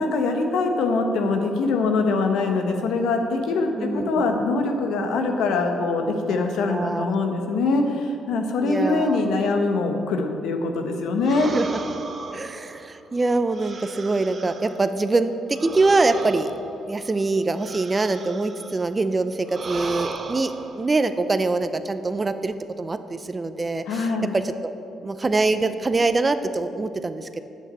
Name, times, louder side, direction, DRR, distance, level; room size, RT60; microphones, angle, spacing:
voice 1, 0.0-11.5 23.9-24.3, left 3 dB, 85° left, 4 dB, 1.3 m, -23 dB
voice 2, 3.7-4.2 6.7-7.1 8.6-9.2 11.5-11.7 12.3-16.5 16.9-24.7 25.0-27.4, right 3 dB, 25° right, 10 dB, 0.6 m, -24 dB
sound 1, 11.2-14.9 15.5-18.8 19.4-20.9, right 4 dB, 45° right, 0.9 m, -36 dB
10.0 x 8.2 x 7.0 m, 2.7 s
cardioid pair, 90°, 0 cm